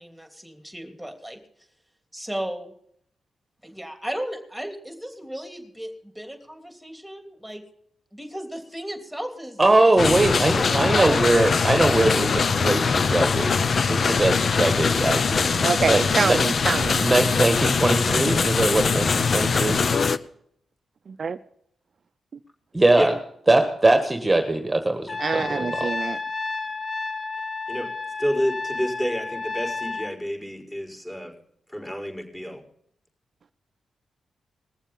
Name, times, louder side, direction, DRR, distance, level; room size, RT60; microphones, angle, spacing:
voice 1, 0.0-1.4 2.1-2.7 3.6-7.6 8.1-11.1, equal, ahead, 3.1 m, -35 dB
voice 2, 9.6-16.4 17.0-19.8 22.7-23.1 23.5-25.9, right 2 dB, 20° right, 1.6 m, -21 dB
sound 1, 10.0-20.2, left 5 dB, 55° left, 0.7 m, -22 dB
voice 3, 15.6-17.0 21.2-21.4 25.2-26.2, right 5 dB, 55° right, 0.5 m, -25 dB
Trumpet, 25.1-30.1, left 3 dB, 40° left, 1.8 m, -31 dB
voice 4, 28.2-31.3 31.7-32.6, equal, 15° left, 4.9 m, -29 dB
21.0 x 7.3 x 5.4 m
cardioid pair, 70°, 0 cm